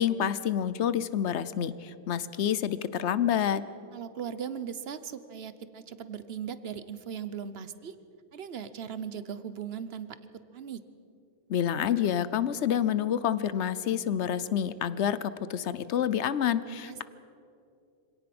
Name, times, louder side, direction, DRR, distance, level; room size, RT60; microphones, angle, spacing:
voice 1, 0.0-3.6 11.5-17.0, left 9 dB, 65° left, 15 dB, 1.0 m, -28 dB
voice 2, 3.9-8.0 8.3-10.1 10.5-10.8 16.8-17.0, right 8 dB, 55° right, 13 dB, 1.1 m, -38 dB
25.5 x 17.5 x 6.1 m, 2.6 s
omnidirectional pair, 1.3 m